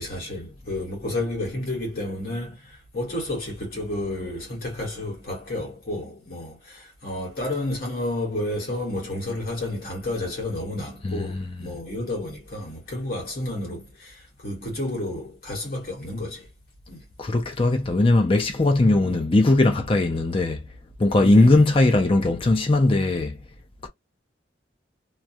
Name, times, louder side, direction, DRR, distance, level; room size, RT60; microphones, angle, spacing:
voice 1, 0.0-16.5 16.9-17.0 19.0-19.2 21.2-21.7, left 1 dB, 50° left, 1.2 m, -31 dB
voice 2, 11.0-11.7 17.2-20.6 21.0-23.4, left 2 dB, 30° left, 0.5 m, -19 dB
2.3 x 2.3 x 2.7 m
head